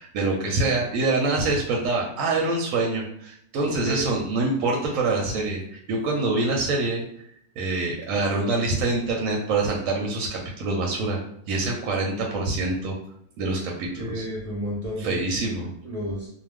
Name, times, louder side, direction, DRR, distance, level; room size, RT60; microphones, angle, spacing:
voice 1, 0.0-5.6 5.9-7.0 7.6-11.2 11.5-13.0 13.4-14.2 15.0-15.7, right 3 dB, 70° right, -1 dB, 0.9 m, -25 dB
voice 2, 3.6-4.1 13.8-15.2 15.8-16.3, equal, 50° right, -6 dB, 0.4 m, -31 dB
2.4 x 2.1 x 3.4 m, 0.69 s
omnidirectional pair, 1.6 m